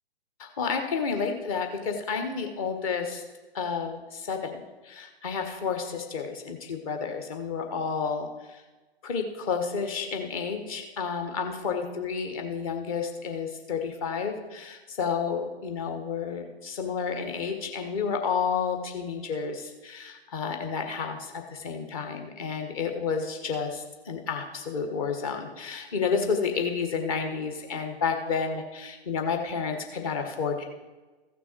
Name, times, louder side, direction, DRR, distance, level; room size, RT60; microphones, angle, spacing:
voice 1, 0.4-3.2 3.5-4.6 4.8-8.6 9.0-30.6, left 5 dB, 35° left, 4 dB, 1.5 m, -31 dB
15.0 x 6.1 x 4.6 m, 1.2 s
figure-of-eight pair, 130°, 31 cm